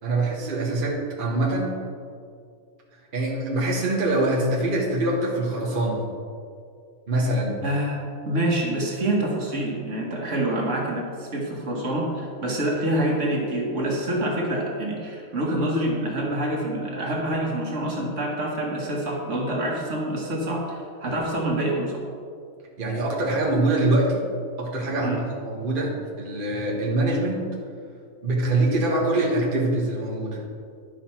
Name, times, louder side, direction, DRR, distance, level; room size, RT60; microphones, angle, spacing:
voice 1, 0.0-1.8 3.1-6.1 7.1-7.6 22.8-24.2 24.6-27.5 28.2-30.4, right 2 dB, 40° right, -3 dB, 1.2 m, -24 dB
voice 2, 7.6-22.0 25.0-25.2, right 1 dB, 60° right, -2 dB, 1.7 m, -26 dB
11.0 x 5.7 x 4.4 m, 2.3 s
omnidirectional pair, 1.4 m